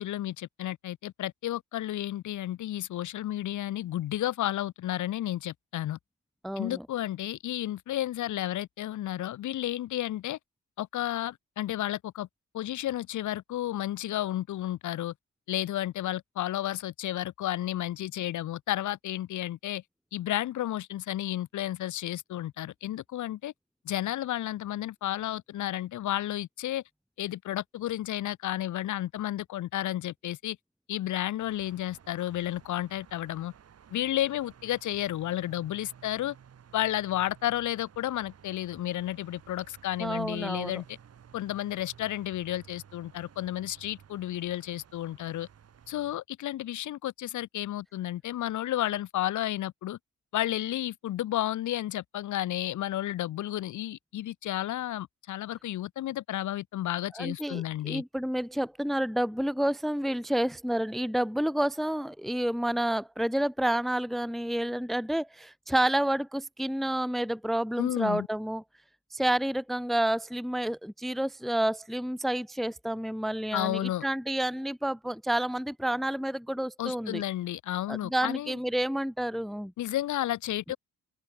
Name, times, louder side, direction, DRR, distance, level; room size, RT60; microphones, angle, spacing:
voice 1, 0.0-6.0 6.6-10.4 10.8-12.3 12.5-15.1 15.5-19.8 20.1-23.5 23.9-26.8 27.2-30.6 30.9-33.5 33.9-36.4 36.7-41.0 41.3-45.5 45.9-50.0 50.3-58.0 67.8-68.3 73.5-74.1 76.8-78.6 79.8-80.8, left 13 dB, 75° left, 2.0 m, -32 dB
voice 2, 6.4-6.8 40.0-40.8 57.2-68.6 69.1-77.2 77.9-79.7, right 1 dB, ahead, 0.8 m, -29 dB
sound 1, 31.4-46.2, right 8 dB, 55° right, 7.3 m, -55 dB
open air
cardioid pair, 90°, 30 cm